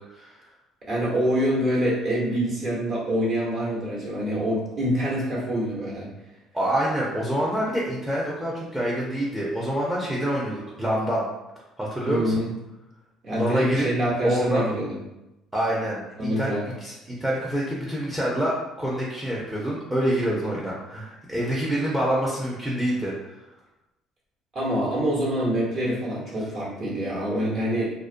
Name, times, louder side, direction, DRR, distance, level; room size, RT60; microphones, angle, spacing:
voice 1, 0.1-0.4 6.5-11.2 11.8-12.5 13.3-13.9 14.2-14.7 15.5-23.3, right 1 dB, 10° right, -5 dB, 0.5 m, -26 dB
voice 2, 0.9-6.1 12.0-12.5 13.2-15.0 16.2-16.7 24.5-27.9, equal, 50° right, -4 dB, 1.0 m, -25 dB
2.5 x 2.1 x 2.5 m, 0.96 s
cardioid pair, 105°, 0 cm